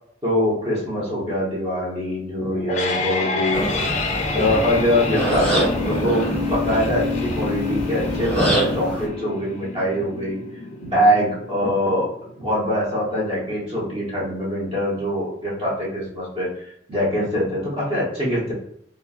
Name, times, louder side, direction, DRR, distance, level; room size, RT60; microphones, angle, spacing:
voice 1, 0.2-3.7 4.3-10.4 10.8-12.1 12.4-18.5, equal, 30° right, -6 dB, 1.0 m, -23 dB
sound 1, 2.4-13.4, left 3 dB, 40° left, 0.3 m, -28 dB
sound 2, 3.5-9.1, right 1 dB, 5° left, 0.9 m, -25 dB
4.2 x 2.0 x 2.4 m, 0.71 s
head